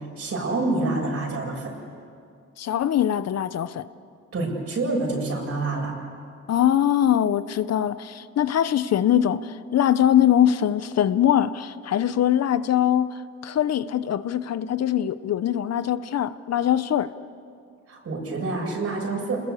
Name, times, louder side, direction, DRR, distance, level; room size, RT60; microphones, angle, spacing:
voice 1, 0.0-1.8 4.3-6.0 17.9-19.4, right 2 dB, 50° right, -1 dB, 7.7 m, -27 dB
voice 2, 2.6-3.9 6.5-17.1, left 10 dB, 55° left, 14 dB, 0.9 m, -22 dB
29.5 x 20.5 x 8.4 m, 2.4 s
cardioid pair, 90°, 30 cm